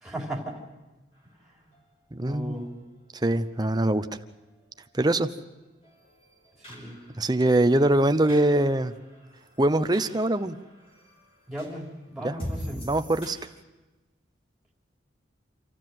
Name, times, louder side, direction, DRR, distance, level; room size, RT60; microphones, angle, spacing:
voice 1, 0.0-0.6 2.2-2.7 6.7-7.0 11.5-12.8, right 1 dB, 5° right, -2 dB, 3.5 m, -36 dB
sound 1, 1.1-13.3, equal, 30° left, 6.3 m, -45 dB
voice 2, 2.1-2.6 3.1-4.1 4.9-5.3 7.1-8.9 9.6-10.6 12.2-12.4 12.8-13.4, right 1 dB, 20° right, 9 dB, 0.8 m, -23 dB
26.5 x 14.5 x 7.7 m, 1.1 s
head